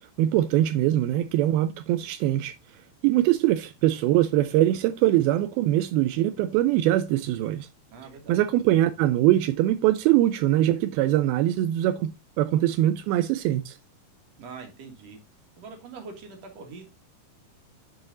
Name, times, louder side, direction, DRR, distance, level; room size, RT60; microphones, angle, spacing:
voice 1, 0.2-2.5 3.0-7.7 8.3-12.1 12.4-13.8, right 14 dB, 90° right, 2.1 m, -22 dB
voice 2, 7.9-8.4 14.4-15.2 15.6-16.9, right 4 dB, 50° right, 2.3 m, -43 dB
11.0 x 4.1 x 3.8 m
omnidirectional pair, 4.9 m